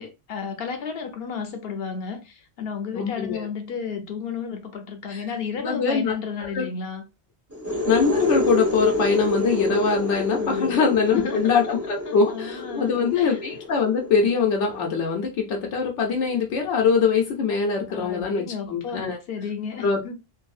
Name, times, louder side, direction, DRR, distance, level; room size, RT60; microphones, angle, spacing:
voice 1, 0.0-7.0 10.3-10.8 11.1-11.5 12.1-13.4 17.9-20.2, left 6 dB, 65° left, 0.8 m, -33 dB
voice 2, 2.9-3.5 5.1-5.2 5.6-6.1 6.4-6.7 7.9-19.2 19.8-20.0, left 5 dB, 90° left, 1.0 m, -23 dB
sound 1, 7.5-15.1, left 2 dB, 15° right, 0.8 m, -28 dB
2.7 x 2.6 x 2.4 m
omnidirectional pair, 1.2 m